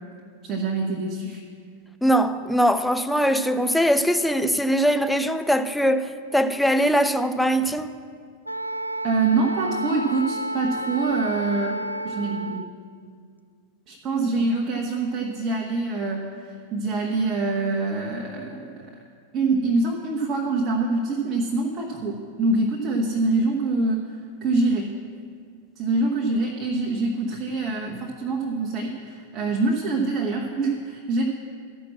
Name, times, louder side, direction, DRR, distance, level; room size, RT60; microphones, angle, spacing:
voice 1, 0.4-1.4 9.0-12.6 13.9-18.7 19.3-24.9 25.8-31.3, right 3 dB, 30° right, 1.1 m, -25 dB
voice 2, 2.0-7.9, equal, ahead, 0.5 m, -21 dB
Wind instrument woodwind instrument, 8.5-12.7, right 1 dB, 90° right, 0.3 m, -31 dB
13.0 x 6.0 x 7.3 m
figure-of-eight pair, 90°, 0 cm